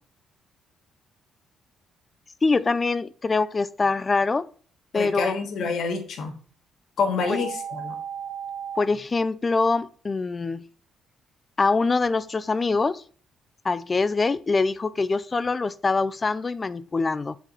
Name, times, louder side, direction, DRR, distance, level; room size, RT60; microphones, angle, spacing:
voice 1, 2.4-4.5 4.9-5.3 8.8-10.7 11.6-13.0 13.6-17.4, left 3 dB, 30° left, 0.4 m, -24 dB
voice 2, 4.9-6.3 7.0-8.0, left 4 dB, 70° left, 1.3 m, -27 dB
sound 1, 7.2-8.8, right 8 dB, 80° right, 0.4 m, -34 dB
7.4 x 3.4 x 4.0 m
cardioid pair, 90°, 0 cm